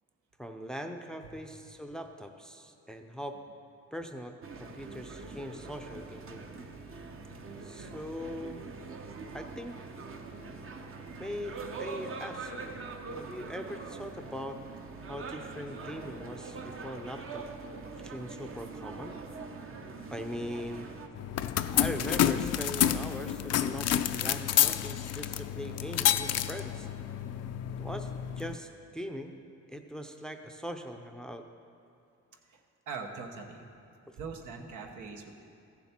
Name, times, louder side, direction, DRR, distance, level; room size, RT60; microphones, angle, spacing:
voice 1, 0.4-3.4 3.9-6.4 7.6-8.6 9.3-9.8 11.2-12.8 13.1-14.6 15.1-17.4 18.0-19.2 20.1-20.9 21.6-26.9 27.8-29.3 29.7-31.4 34.1-34.2, equal, ahead, 6 dB, 0.5 m, -41 dB
sound 1, 4.4-21.1, right 4 dB, 45° right, 0.9 m, -43 dB
sound 2, 21.2-28.6, left 11 dB, 55° left, 0.5 m, -29 dB
voice 2, 32.5-33.7 34.2-35.3, right 4 dB, 80° right, 3 dB, 1.1 m, -42 dB
14.5 x 7.2 x 4.4 m, 2.5 s
cardioid pair, 90°, 30 cm